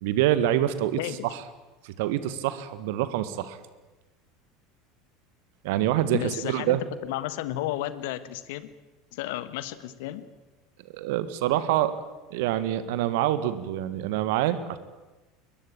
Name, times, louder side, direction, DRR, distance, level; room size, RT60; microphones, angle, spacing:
voice 1, 0.0-1.4 1.8-3.6 5.6-6.8 10.9-11.9 12.3-14.8, right 12 dB, 60° right, 14 dB, 1.7 m, -26 dB
voice 2, 6.1-8.7 9.1-10.2, left 14 dB, 60° left, 15 dB, 1.4 m, -32 dB
21.5 x 21.5 x 9.0 m, 1.1 s
figure-of-eight pair, 70°, 0 cm